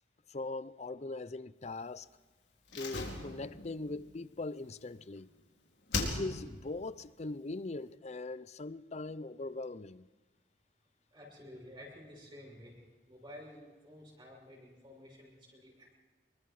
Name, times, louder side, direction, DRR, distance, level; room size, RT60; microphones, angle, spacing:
voice 1, 0.3-2.1 2.8-5.3 5.9-10.1, left 2 dB, 40° left, 0.6 m, -41 dB
Slam, 2.7-5.4 5.9-6.7 6.9-7.0, left 3 dB, 75° left, 4.2 m, -39 dB
voice 2, 11.1-12.8 13.1-15.9, left 1 dB, 30° right, 6.5 m, -52 dB
26.5 x 23.0 x 4.9 m
head